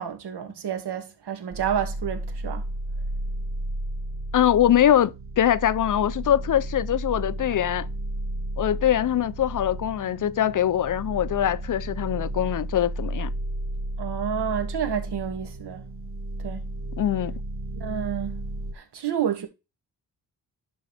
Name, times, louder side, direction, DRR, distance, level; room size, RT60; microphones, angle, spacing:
voice 1, 0.0-2.6 14.0-15.8 16.4-16.6 17.7-18.4 18.7-19.5, right 8 dB, 85° right, 2.2 m, -29 dB
sound 1, 1.5-18.7, right 1 dB, 35° right, 1.0 m, -33 dB
voice 2, 4.3-7.9 8.6-13.3 17.0-17.3, left 10 dB, 50° left, 0.6 m, -23 dB
11.5 x 4.6 x 3.4 m
wide cardioid pair, 135°, 39 cm